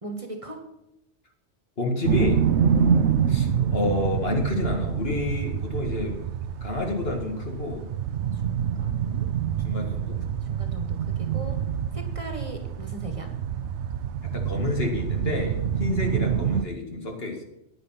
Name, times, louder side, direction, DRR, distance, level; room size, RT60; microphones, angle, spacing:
voice 1, 0.0-0.6 8.3-9.3 10.5-11.6 11.9-13.3, right 1 dB, 30° right, 4 dB, 1.6 m, -38 dB
voice 2, 1.8-2.4 3.3-6.2 6.6-7.9 9.6-10.2 11.5-11.6 14.3-17.4, left 2 dB, 55° left, 2 dB, 2.2 m, -29 dB
sound 1, 2.0-16.6, right 8 dB, 75° right, 0.9 m, -26 dB
9.8 x 9.6 x 5.8 m, 0.87 s
omnidirectional pair, 1.2 m